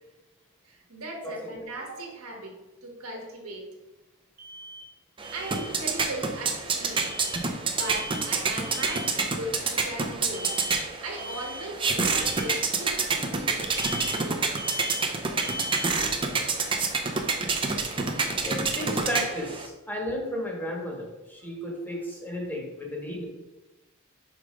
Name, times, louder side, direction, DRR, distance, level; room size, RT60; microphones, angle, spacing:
voice 1, 0.6-2.5 2.8-3.6 5.3-7.1 7.7-10.7 11.0-13.8 18.4-18.9, right 1 dB, 75° right, 0 dB, 1.6 m, -38 dB
Alarm, 4.4-4.8 5.2-5.7 6.9-7.4 7.8-8.3 8.6-9.1 10.3-10.8 11.2-11.6 12.0-12.5 13.7-14.2 14.6-15.0 15.4-15.9, left 1 dB, 55° right, 2.0 m, -38 dB
sound 1, 5.2-19.7, right 4 dB, 25° right, 0.7 m, -28 dB
voice 2, 18.4-23.3, equal, 10° left, -1 dB, 1.3 m, -33 dB
5.3 x 4.8 x 5.1 m, 1.1 s
head